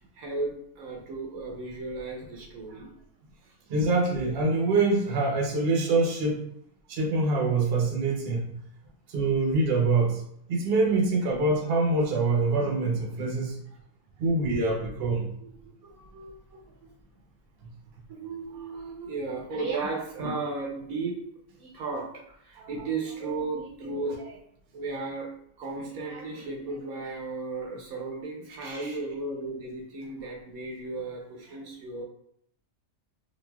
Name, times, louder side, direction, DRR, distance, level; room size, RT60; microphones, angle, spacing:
voice 1, 0.0-2.9 14.2-14.3 15.4-16.9 18.1-21.2 21.6-22.0 22.4-24.4 24.7-25.3 25.6-32.0, right 3 dB, 75° right, -1 dB, 1.1 m, -35 dB
voice 2, 3.7-6.4 6.9-8.6 9.1-10.2 10.5-13.6 14.2-15.3 20.2-20.3 28.6-28.9, right 3 dB, 50° right, -1 dB, 0.8 m, -25 dB
4.0 x 2.5 x 2.2 m, 0.70 s
omnidirectional pair, 1.6 m